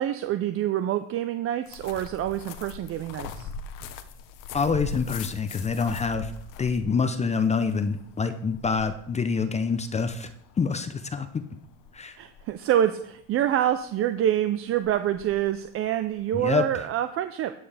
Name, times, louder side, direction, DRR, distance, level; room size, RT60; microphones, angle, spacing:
voice 1, 0.0-3.5 12.2-17.5, right 11 dB, 40° right, 10 dB, 0.5 m, -26 dB
sound 1, 1.7-16.9, left 5 dB, 60° left, 1.1 m, -42 dB
voice 2, 4.5-6.3 6.6-10.3 10.6-11.3 11.9-12.2 16.3-16.6, left 5 dB, 20° left, 9 dB, 0.6 m, -26 dB
13.0 x 7.8 x 3.4 m, 0.73 s
supercardioid pair, 105°, 36 cm